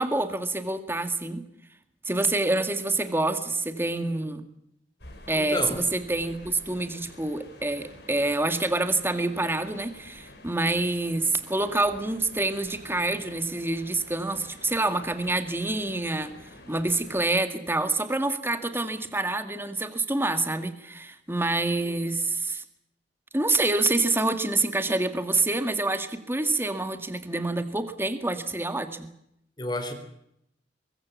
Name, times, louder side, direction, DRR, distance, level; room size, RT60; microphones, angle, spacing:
voice 1, 0.0-1.4 2.1-4.5 5.3-16.3 16.7-22.6 23.3-29.1, right 2 dB, 15° right, 1.9 m, -27 dB
sound 1, 5.0-17.3, left 1 dB, 65° left, 5.6 m, -49 dB
voice 2, 5.4-5.8 29.6-29.9, left 1 dB, 25° left, 4.0 m, -30 dB
23.0 x 22.0 x 7.3 m
head